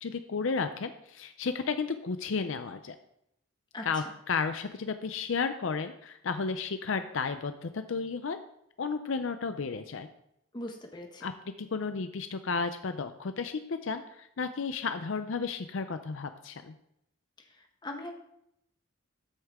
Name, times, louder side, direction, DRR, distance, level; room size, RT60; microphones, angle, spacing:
voice 1, 0.0-3.0 3.8-8.4 8.8-10.1 11.2-11.3 11.6-16.7, left 5 dB, 65° left, 9 dB, 0.5 m, -33 dB
voice 2, 3.7-4.1 10.5-11.3 17.6-18.1, left 1 dB, 20° left, 3 dB, 1.2 m, -41 dB
13.0 x 6.5 x 3.6 m, 0.78 s
head